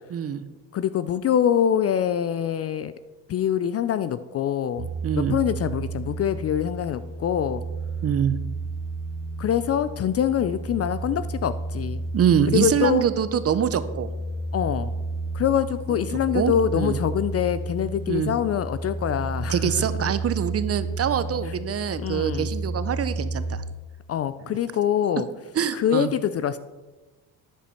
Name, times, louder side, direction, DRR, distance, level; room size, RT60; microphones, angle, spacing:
voice 1, 0.1-0.4 5.0-5.4 8.0-8.4 12.1-14.1 15.9-16.1 16.3-17.0 18.1-18.3 19.5-23.6 25.5-26.1, right 8 dB, 35° right, 13 dB, 0.6 m, -24 dB
voice 2, 0.7-2.9 3.3-4.9 5.2-7.6 9.4-12.0 12.5-13.0 14.5-14.9 15.3-20.1 22.0-22.5 24.1-25.3 25.7-26.6, left 9 dB, 35° left, 14 dB, 0.4 m, -24 dB
sound 1, 4.8-23.6, right 2 dB, 75° right, 2.0 m, -32 dB
10.0 x 5.0 x 5.6 m, 1.2 s
supercardioid pair, 85°, 43 cm